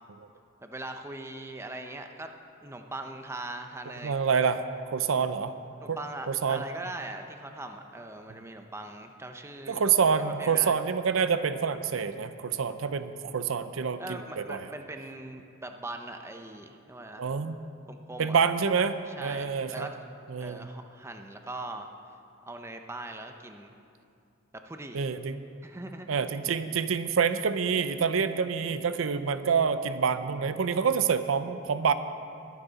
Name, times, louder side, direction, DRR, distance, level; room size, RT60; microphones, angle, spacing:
voice 1, 0.6-2.3 2.6-4.2 5.1-5.2 5.8-9.8 10.2-10.8 14.0-17.3 17.9-18.4 19.1-19.9 20.4-21.9 22.5-23.7 24.7-25.0 25.6-26.1, right 2 dB, 15° right, 5 dB, 0.6 m, -41 dB
voice 2, 4.0-4.6 4.9-5.5 5.9-6.0 6.3-6.6 9.7-14.0 14.4-14.7 17.2-17.6 18.2-19.9 20.3-20.7 24.9-25.4 26.1-31.9, right 6 dB, 75° right, 11 dB, 0.5 m, -27 dB
21.5 x 9.2 x 4.1 m, 2.5 s
head